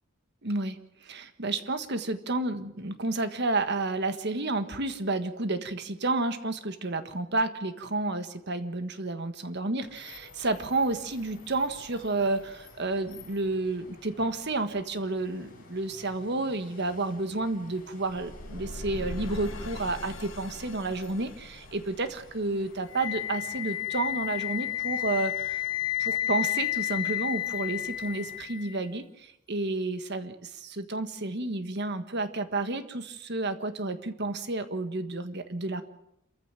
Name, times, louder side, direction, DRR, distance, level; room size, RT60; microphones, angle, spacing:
voice 1, 0.4-25.6 26.0-35.8, right 2 dB, 50° right, 9 dB, 1.5 m, -31 dB
sound 1, 9.8-28.4, left 2 dB, 40° left, 5.1 m, -53 dB
sound 2, 18.0-23.1, left 1 dB, 65° left, 1.7 m, -41 dB
Wind instrument woodwind instrument, 22.9-28.9, left 14 dB, 20° left, 2.1 m, -31 dB
27.0 x 14.5 x 7.5 m, 0.81 s
head